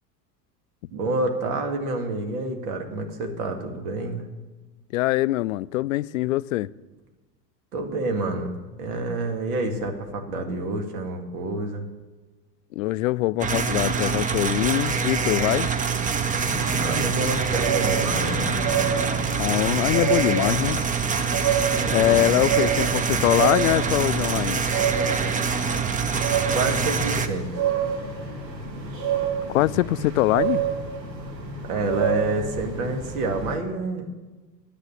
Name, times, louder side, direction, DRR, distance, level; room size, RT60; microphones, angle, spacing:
voice 1, 0.9-4.2 7.7-11.8 16.8-18.6 21.8-22.3 26.5-27.6 31.7-34.1, right 2 dB, 60° right, 2.4 m, -28 dB
voice 2, 4.9-6.7 12.7-15.7 19.4-20.8 21.9-24.6 29.5-30.6, left 16 dB, 55° left, 0.5 m, -23 dB
sound 1, 13.4-27.3, right 5 dB, 15° right, 0.9 m, -25 dB
sound 2, 16.1-33.5, right 6 dB, 75° right, 2.3 m, -29 dB
10.5 x 8.2 x 9.4 m
figure-of-eight pair, 85°, 50 cm